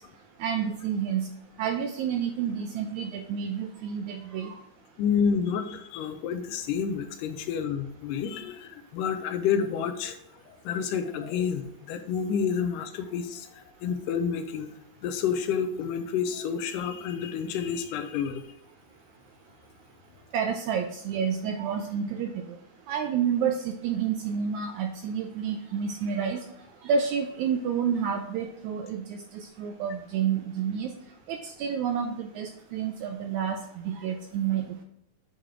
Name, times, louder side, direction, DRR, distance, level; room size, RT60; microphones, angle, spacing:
voice 1, 0.4-1.3 1.6-4.6 20.3-22.3 22.9-26.4 26.8-30.9 31.3-34.8, right 7 dB, 85° right, 5 dB, 1.7 m, -29 dB
voice 2, 5.0-10.2 10.7-14.7 15.0-18.4, left 7 dB, 85° left, 8 dB, 2.2 m, -29 dB
8.4 x 3.7 x 4.7 m, 0.73 s
omnidirectional pair, 3.8 m